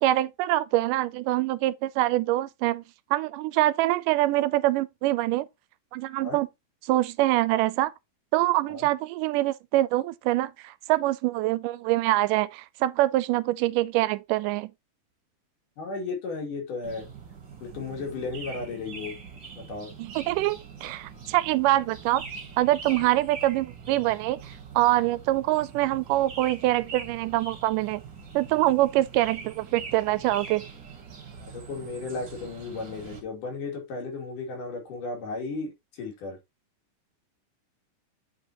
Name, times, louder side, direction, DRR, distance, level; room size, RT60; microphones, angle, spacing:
voice 1, 0.0-2.8 3.1-5.5 5.9-6.5 6.9-7.9 8.3-14.7 20.0-22.2 22.6-28.0 28.3-30.7, right 16 dB, 85° right, 2.2 m, -25 dB
voice 2, 15.8-17.1 17.6-19.1 19.6-19.9 23.0-23.1 31.4-36.4, left 3 dB, 75° left, 4.3 m, -35 dB
sound 1, 16.8-33.2, right 5 dB, 40° right, 2.3 m, -43 dB
8.7 x 5.0 x 3.0 m
omnidirectional pair, 3.7 m